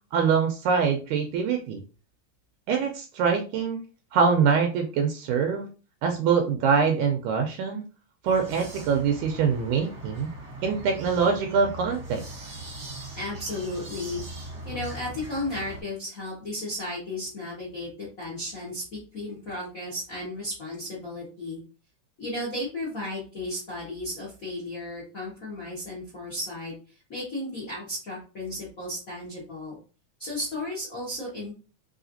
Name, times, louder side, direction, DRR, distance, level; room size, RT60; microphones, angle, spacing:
voice 1, 0.1-1.8 2.7-3.8 4.1-5.7 6.0-7.8 8.2-10.3 10.6-12.2, right 6 dB, 80° right, 4 dB, 1.9 m, -24 dB
sound 1, 8.2-15.8, right 2 dB, 55° right, 1.2 m, -40 dB
voice 2, 13.2-14.2 14.6-21.6 22.2-26.7 27.1-29.8 30.2-31.5, left 1 dB, 70° left, -5 dB, 0.8 m, -34 dB
4.9 x 3.1 x 2.6 m, 0.35 s
omnidirectional pair, 3.7 m